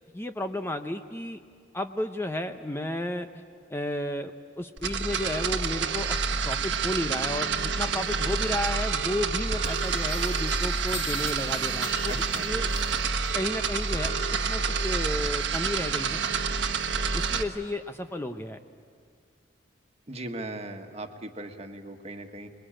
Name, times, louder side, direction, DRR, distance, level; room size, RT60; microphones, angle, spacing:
voice 1, 0.1-1.4 1.7-3.3 3.7-6.2 6.4-12.7 13.3-14.2 14.5-16.2 17.1-18.6, left 1 dB, 15° left, 6 dB, 0.7 m, -32 dB
sound 1, 4.8-17.4, right 5 dB, 75° right, 1.4 m, -28 dB
sound 2, 8.9-9.0 9.6-13.3 13.6-14.4, left 5 dB, 75° left, 4.3 m, -42 dB
voice 2, 12.1-12.5 20.1-22.5, right 2 dB, 35° right, 5 dB, 1.6 m, -38 dB
27.0 x 21.5 x 8.9 m, 2.3 s
head